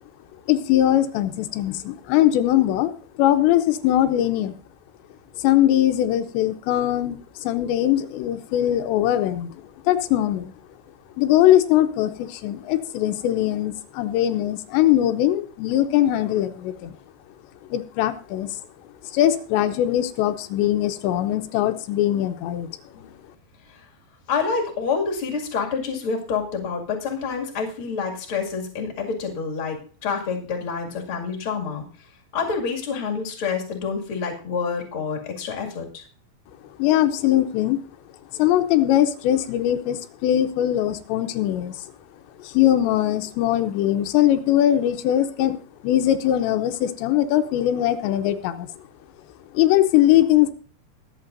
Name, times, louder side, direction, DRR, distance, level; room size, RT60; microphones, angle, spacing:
voice 1, 0.5-4.5 5.3-10.5 11.2-17.0 17.7-18.6 19.0-22.7 36.8-37.8 38.3-41.9 42.4-45.6 45.8-48.7 49.5-50.5, left 12 dB, 85° left, 8 dB, 3.0 m, -21 dB
voice 2, 24.3-31.8 32.3-36.0, left 5 dB, 40° left, 1 dB, 2.3 m, -27 dB
22.5 x 8.4 x 2.6 m, 0.39 s
omnidirectional pair, 5.0 m